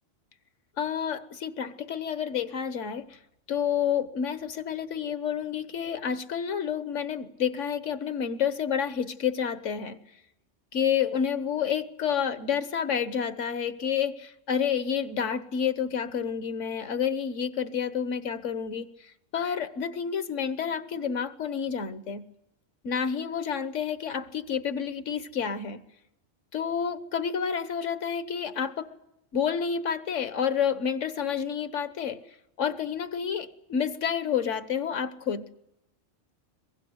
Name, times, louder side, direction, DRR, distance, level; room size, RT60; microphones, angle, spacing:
voice 1, 0.8-3.2 3.5-10.0 10.7-18.9 19.3-22.2 22.8-25.8 26.5-28.9 29.3-32.2 32.6-35.5, left 7 dB, 80° left, 1.5 m, -29 dB
23.0 x 21.5 x 8.0 m
omnidirectional pair, 1.3 m